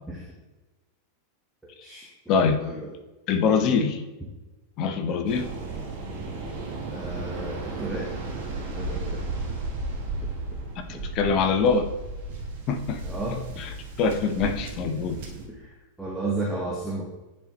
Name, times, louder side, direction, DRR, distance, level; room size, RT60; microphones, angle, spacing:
voice 1, 1.6-2.9 6.9-8.1 8.7-9.2 10.9-11.0 13.0-13.6 15.5-15.7 16.0-17.1, right 2 dB, 5° right, -4 dB, 1.2 m, -33 dB
voice 2, 3.3-4.0 4.8-5.5 11.0-11.9 12.7-13.0 13.6-13.7 14.0-15.2, left 5 dB, 40° left, 7 dB, 0.8 m, -23 dB
Waves surf, 5.3-15.5, right 2 dB, 50° right, 1.3 m, -34 dB
10.5 x 4.3 x 3.0 m, 1.1 s
figure-of-eight pair, 90°, 0 cm